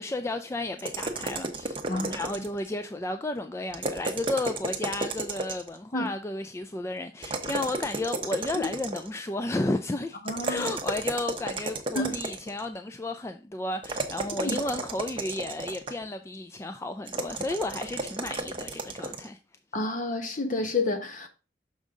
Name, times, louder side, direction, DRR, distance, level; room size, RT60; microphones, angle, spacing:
voice 1, 0.0-19.4, left 2 dB, 15° left, 0.3 m, -33 dB
sound 1, 0.8-2.7 3.7-5.8 7.2-9.2 10.3-12.6 13.8-16.1 17.1-19.3, right 3 dB, 30° right, 0.8 m, -33 dB
voice 2, 1.9-2.2 5.9-6.1 8.6-8.7 10.3-10.7 11.9-12.2 14.4-14.6 19.7-21.3, left 2 dB, 50° left, 1.1 m, -29 dB
6.3 x 5.4 x 3.7 m
head